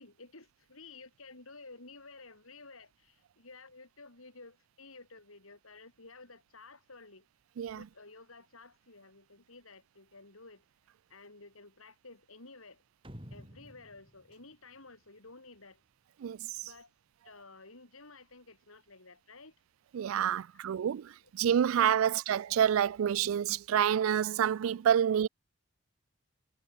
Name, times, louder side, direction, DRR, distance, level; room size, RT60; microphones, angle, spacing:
voice 1, 0.0-7.3 7.7-10.7 11.1-12.8 13.3-15.8 16.6-16.9 17.2-19.5 20.3-20.8 21.2-21.3, left 3 dB, 85° left, 5.6 m, -53 dB
sound 1, 13.0-15.6, equal, 25° right, 5.7 m, -51 dB
voice 2, 19.9-25.3, right 9 dB, 80° right, 0.3 m, -28 dB
head